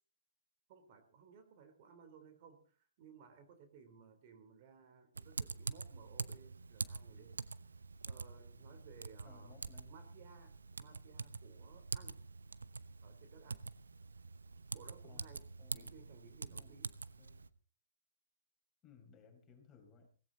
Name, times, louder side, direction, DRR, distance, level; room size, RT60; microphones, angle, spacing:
voice 1, 0.7-7.5 8.1-9.5 9.9-12.2 13.0-13.7 14.7-15.5 15.7-16.9, right 6 dB, 45° right, 7 dB, 3.7 m, -59 dB
Typing, 5.2-17.5, right 4 dB, 85° right, 0.9 m, -46 dB
voice 2, 9.2-10.0 15.0-16.1 16.5-16.8 17.2-17.5 18.8-20.1, left 6 dB, 20° left, 3 dB, 5.5 m, -62 dB
18.0 x 16.0 x 4.1 m, 0.38 s
hypercardioid pair, 130°, 0 cm